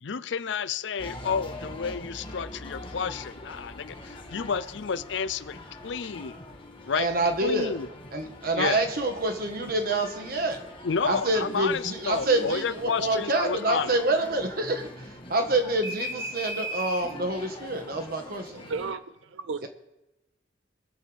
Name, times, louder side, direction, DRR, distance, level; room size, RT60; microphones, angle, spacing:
voice 1, 0.0-6.3 6.9-7.1 7.4-7.9 8.5-8.8 10.8-13.9, left 6 dB, 70° left, 0.5 m, -30 dB
sound 1, 1.0-18.9, left 1 dB, 30° left, 1.5 m, -41 dB
voice 2, 6.9-7.8 8.1-10.6 11.0-18.6 19.6-19.7, right 2 dB, 50° right, 1.4 m, -27 dB
voice 3, 18.5-19.7, right 4 dB, 75° right, 0.5 m, -34 dB
22.5 x 7.7 x 3.5 m
head